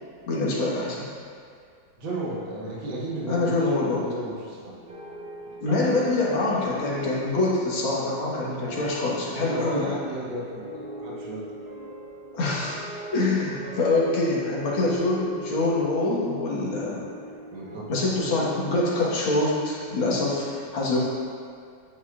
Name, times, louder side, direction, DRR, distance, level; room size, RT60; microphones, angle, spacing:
voice 1, 0.3-1.1 3.3-4.1 5.6-9.9 12.3-12.8 13.1-17.0 17.9-21.0, left 2 dB, 85° left, -5 dB, 2.3 m, -25 dB
voice 2, 2.0-4.8 9.5-11.4 17.5-17.9 18.2-18.3, right 1 dB, 70° right, -5 dB, 2.1 m, -33 dB
sound 1, 4.9-18.2, right 1 dB, 40° right, 0.9 m, -40 dB
9.4 x 8.6 x 2.4 m, 2.2 s
omnidirectional pair, 2.2 m